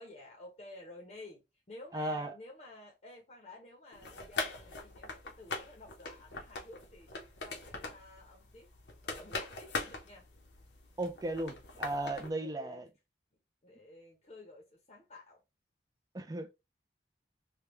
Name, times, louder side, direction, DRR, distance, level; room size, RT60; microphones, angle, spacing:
voice 1, 0.0-7.1 7.4-8.7 9.0-10.3 12.4-12.8 13.6-15.4, left 2 dB, 35° left, 0.8 m, -52 dB
voice 2, 1.9-2.3 11.0-12.9 16.1-16.5, right 1 dB, 20° right, 0.4 m, -36 dB
sound 1, 3.9-12.3, left 3 dB, 80° left, 0.8 m, -42 dB
3.4 x 2.3 x 3.0 m
head